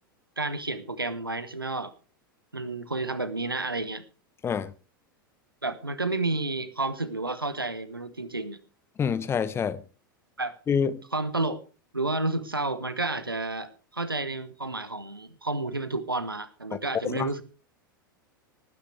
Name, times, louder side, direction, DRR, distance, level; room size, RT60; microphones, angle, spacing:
voice 1, 0.4-1.9 2.5-4.0 5.6-8.6 10.4-10.5 11.1-11.6 11.9-17.4, right 2 dB, 85° right, 1.3 m, -31 dB
voice 2, 9.0-9.8 10.7-11.0 17.0-17.3, left 7 dB, 20° left, 1.0 m, -26 dB
19.0 x 10.0 x 3.3 m
figure-of-eight pair, 90°, 12 cm